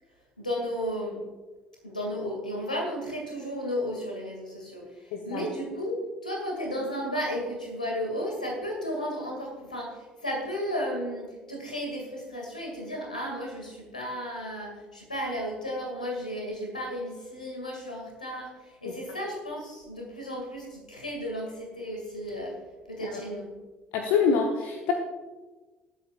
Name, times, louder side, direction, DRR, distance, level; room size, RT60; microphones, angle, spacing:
voice 1, 0.4-1.2 1.8-22.6 22.9-23.5, equal, 85° left, 0 dB, 2.1 m, -34 dB
voice 2, 5.1-5.5 23.0-23.2 23.9-24.9, left 6 dB, 60° left, 3 dB, 1.0 m, -26 dB
19.0 x 8.4 x 2.4 m, 1.2 s
figure-of-eight pair, 55°, 4 cm